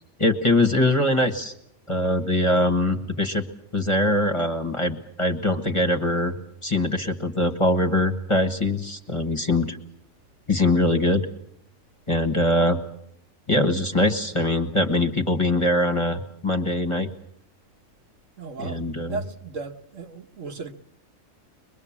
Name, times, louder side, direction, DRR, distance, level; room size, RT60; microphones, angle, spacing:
voice 1, 0.2-1.5 1.9-3.4 3.7-6.3 6.6-9.8 10.5-11.3 12.1-12.8 13.5-17.1 18.6-19.2, left 1 dB, 25° left, 1.4 m, -22 dB
voice 2, 18.4-18.8 19.1-20.7, right 4 dB, 70° right, 1.6 m, -35 dB
23.0 x 21.5 x 7.3 m
omnidirectional pair, 1.4 m